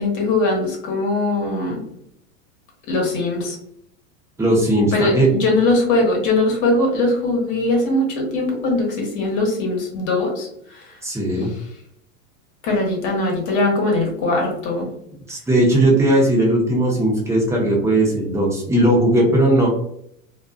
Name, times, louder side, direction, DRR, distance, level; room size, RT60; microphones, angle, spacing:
voice 1, 0.0-1.8 2.9-3.6 4.9-11.0 11.4-11.6 12.6-14.9, left 2 dB, 45° left, 0 dB, 1.1 m, -21 dB
voice 2, 4.4-5.3 11.0-11.5 15.3-19.7, right 1 dB, 5° right, -3 dB, 0.7 m, -17 dB
2.5 x 2.3 x 2.4 m, 0.72 s
supercardioid pair, 125°, 41 cm